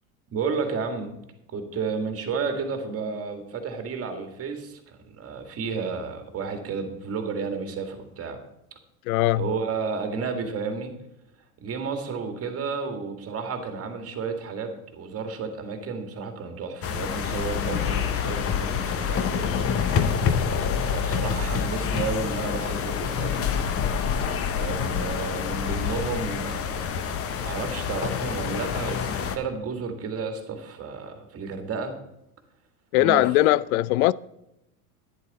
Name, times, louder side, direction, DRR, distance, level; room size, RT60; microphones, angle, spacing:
voice 1, 0.3-1.2 1.5-8.4 9.3-10.9 11.6-20.0 20.8-23.7 24.6-32.0 33.0-33.3, right 5 dB, 30° right, 2.0 m, -32 dB
voice 2, 9.1-9.5 32.9-34.1, left 16 dB, 70° left, 0.5 m, -20 dB
sound 1, 16.8-29.4, left 7 dB, 30° left, 0.9 m, -27 dB
11.0 x 9.9 x 4.1 m
supercardioid pair, 110°, 46 cm